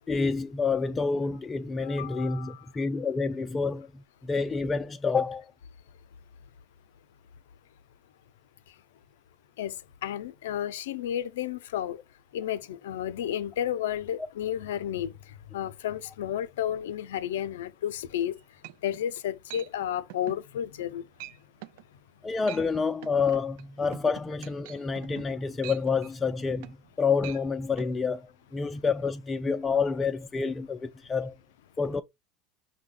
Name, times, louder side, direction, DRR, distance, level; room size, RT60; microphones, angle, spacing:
voice 1, 0.1-5.5 22.2-31.3 31.8-32.0, left 5 dB, 20° left, 0.3 m, -28 dB
voice 2, 1.8-2.6 9.6-9.7 10.0-12.0 12.3-15.1 15.5-18.3 18.8-21.0, left 10 dB, 90° left, 0.4 m, -32 dB
sound 1, 18.2-18.3 18.6-19.1 19.5-19.7 20.1-20.4 20.8-20.9 21.2-21.4 21.6-21.8 22.3-22.7 23.0-26.9 27.2-27.4 27.8-27.9, right 16 dB, 75° right, 0.3 m, -45 dB
5.5 x 2.1 x 3.7 m
supercardioid pair, 105°, 0 cm